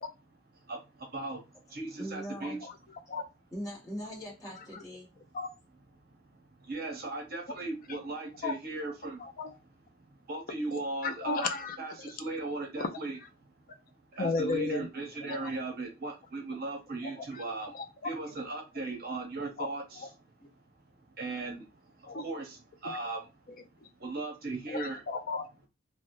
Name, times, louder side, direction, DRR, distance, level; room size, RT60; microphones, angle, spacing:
voice 1, 0.7-2.6 6.1-9.6 10.1-11.4 11.8-13.2 14.1-20.1 21.2-23.3 24.0-25.0, right 2 dB, 45° right, 0.8 m, -38 dB
voice 2, 2.0-2.6 3.5-5.1, equal, 15° left, 1.3 m, -40 dB
voice 3, 9.2-9.5 11.0-11.8 12.0-12.1 12.8-12.9 14.2-14.9 15.3-15.5 17.3-17.4 17.7-17.9 19.6-19.7 20.0-20.1 22.1-22.2 22.8-22.9 24.7-25.7, left 3 dB, 45° left, 0.5 m, -33 dB
3.1 x 2.3 x 2.6 m
head